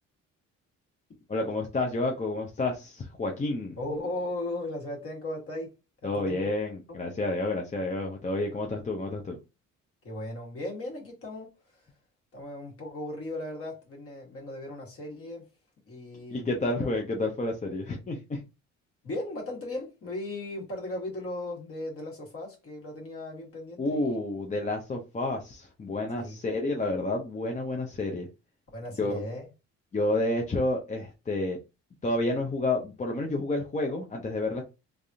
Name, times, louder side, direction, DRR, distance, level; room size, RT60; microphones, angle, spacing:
voice 1, 1.3-3.8 6.0-9.4 16.3-18.4 23.8-28.3 29.0-29.2 29.9-31.6 32.0-34.6, left 2 dB, 25° left, 0.6 m, -30 dB
voice 2, 3.8-5.7 6.0-6.5 10.0-11.5 12.3-15.4 15.9-16.5 16.8-16.9 19.0-24.2 26.2-26.4 28.7-29.5, left 1 dB, 50° left, 1.5 m, -37 dB
3.3 x 2.4 x 2.6 m
cardioid pair, 90°, 30 cm